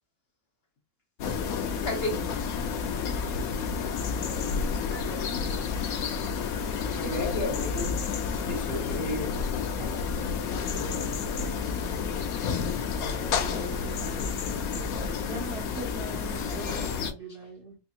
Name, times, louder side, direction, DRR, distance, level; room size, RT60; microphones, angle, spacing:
sound 1, 1.2-17.1, left 6 dB, 85° left, 1.1 m, -30 dB
voice 1, 1.8-2.3 4.6-4.7 4.9-5.3 6.2-6.5 6.9-7.9 8.3-9.3 12.3-12.5, left 1 dB, 50° left, 0.9 m, -34 dB
voice 2, 4.0-5.7 9.7-12.0 13.0-15.8, right 1 dB, 70° right, 2.0 m, -45 dB
voice 3, 15.2-17.8, right 3 dB, 45° right, 1.3 m, -41 dB
4.5 x 2.8 x 2.4 m
omnidirectional pair, 1.5 m